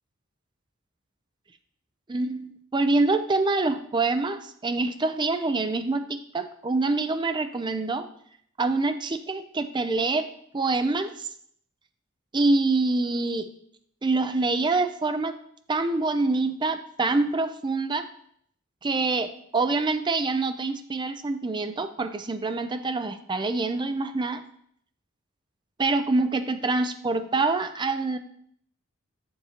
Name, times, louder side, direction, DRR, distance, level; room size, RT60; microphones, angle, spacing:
voice 1, 2.1-8.1 8.6-10.3 10.5-11.3 12.3-13.5 14.0-15.3 15.7-18.1 18.8-24.4 25.8-28.2, right 3 dB, 20° right, 9 dB, 0.5 m, -25 dB
7.7 x 7.3 x 2.9 m, 0.66 s
head